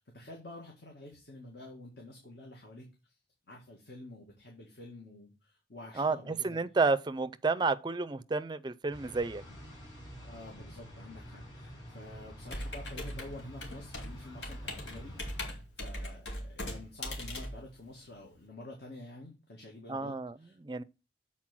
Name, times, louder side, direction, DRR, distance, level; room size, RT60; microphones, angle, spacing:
voice 1, 0.0-3.2 3.5-6.6 10.2-20.6, left 1 dB, 60° left, 2.0 m, -49 dB
voice 2, 6.0-9.4 19.9-20.3 20.6-20.8, right 3 dB, 25° right, 0.4 m, -31 dB
sound 1, 8.9-15.5, equal, 25° left, 5.8 m, -48 dB
Computer keyboard, 12.5-18.4, left 1 dB, 75° left, 2.3 m, -40 dB
7.5 x 4.3 x 6.0 m
head